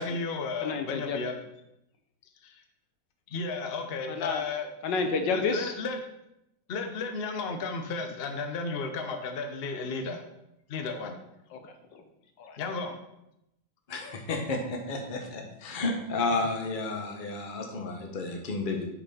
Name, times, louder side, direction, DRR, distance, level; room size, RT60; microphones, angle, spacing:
voice 1, 0.0-1.4 2.4-2.6 3.3-4.7 5.3-6.0 6.7-10.2 10.7-11.2 12.6-13.0, left 4 dB, 90° left, 5 dB, 0.5 m, -33 dB
voice 2, 0.6-1.2 4.1-4.4 4.8-5.7 11.5-12.0 12.4-12.6, left 4 dB, 70° left, 6 dB, 1.4 m, -30 dB
voice 3, 13.9-18.9, left 3 dB, 35° left, 2 dB, 0.8 m, -32 dB
6.9 x 5.4 x 4.2 m, 0.85 s
omnidirectional pair, 2.1 m